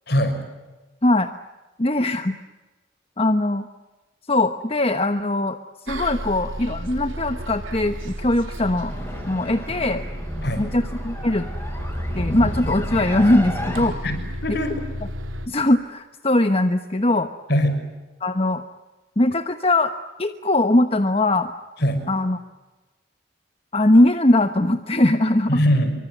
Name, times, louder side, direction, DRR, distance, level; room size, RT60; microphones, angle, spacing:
voice 1, 0.1-0.4 10.4-10.6 14.0-14.7 17.5-17.8 21.8-22.0 25.5-25.9, equal, 55° left, 7 dB, 6.1 m, -21 dB
voice 2, 1.8-2.4 3.2-3.7 4.3-8.9 9.3-10.0 10.6-11.5 12.1-13.9 15.5-17.3 18.2-18.6 19.2-19.9 20.2-21.5 22.1-22.4 23.7-25.6, left 1 dB, 30° left, 8 dB, 1.1 m, -20 dB
Bus, 5.9-15.5, equal, 85° right, 3.3 m, -33 dB
sound 1, 8.9-13.9, equal, 10° left, 6.3 m, -31 dB
26.0 x 24.5 x 9.4 m, 1.2 s
head